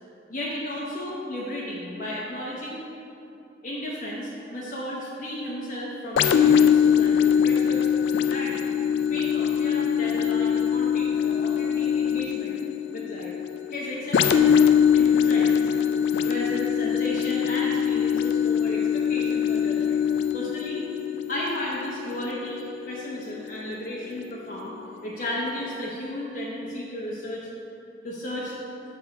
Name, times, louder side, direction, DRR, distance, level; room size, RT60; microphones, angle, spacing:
voice 1, 0.3-2.9 3.6-7.9 8.3-8.7 9.1-12.6 12.9-13.3 13.7-14.6 14.9-15.7 16.2-20.0 20.3-20.8 21.3-24.7 25.0-27.5 28.0-28.5, left 1 dB, 50° left, -6 dB, 1.0 m, -34 dB
sound 1, 6.2-23.7 24.2-24.4, left 8 dB, 80° left, 0.3 m, -23 dB
6.2 x 5.1 x 6.4 m, 2.8 s
head